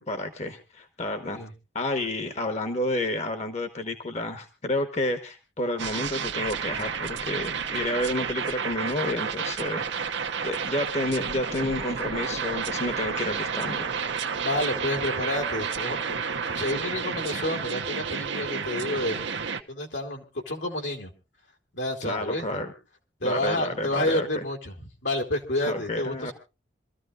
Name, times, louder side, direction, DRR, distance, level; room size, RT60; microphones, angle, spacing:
voice 1, 0.1-1.4 1.7-13.9 16.8-16.9 22.0-22.7 23.2-24.3 25.6-26.3, left 1 dB, 35° left, 7 dB, 1.2 m, -30 dB
sound 1, 5.8-19.6, right 6 dB, 70° right, 1.0 m, -31 dB
voice 2, 14.4-19.3 19.7-21.1 21.7-22.6 23.2-26.3, left 1 dB, 75° left, 2 dB, 2.7 m, -30 dB
26.5 x 14.0 x 2.5 m, 0.30 s
head